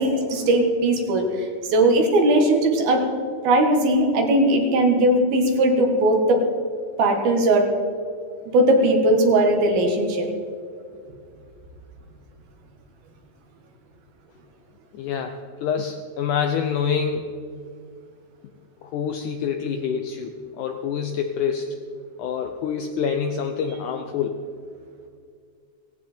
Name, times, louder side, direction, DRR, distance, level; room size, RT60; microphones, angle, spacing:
voice 1, 0.0-3.1 3.4-6.4 7.0-7.7 8.5-10.3, right 1 dB, 70° right, 3 dB, 3.4 m, -19 dB
voice 2, 14.9-17.3 18.8-21.8 22.2-24.4, left 7 dB, 90° left, 5 dB, 1.7 m, -26 dB
17.5 x 16.0 x 4.4 m, 2.2 s
omnidirectional pair, 4.6 m